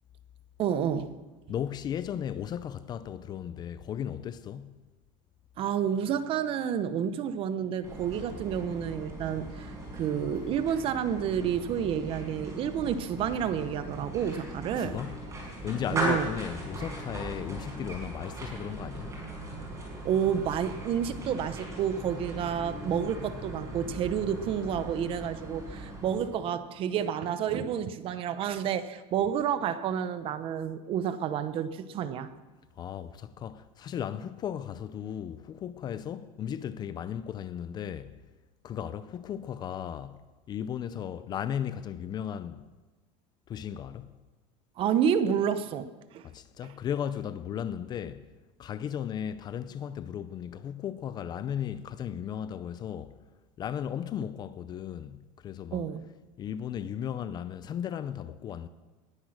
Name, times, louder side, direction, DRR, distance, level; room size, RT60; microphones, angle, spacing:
voice 1, 0.6-1.1 5.6-15.0 15.9-16.3 20.0-32.3 44.8-46.3 55.7-56.1, right 8 dB, 35° right, 0.8 m, -30 dB
voice 2, 1.5-4.8 14.7-15.1 15.6-19.2 32.8-38.2 38.6-40.2 40.5-42.6 43.5-44.1 46.2-48.2 48.6-53.2 53.6-55.8 56.4-58.7, left 9 dB, 25° left, 0.5 m, -36 dB
sound 1, 7.8-26.5, right 1 dB, 20° right, 5.4 m, -39 dB
20.0 x 10.0 x 6.5 m
cardioid pair, 160°, 16 cm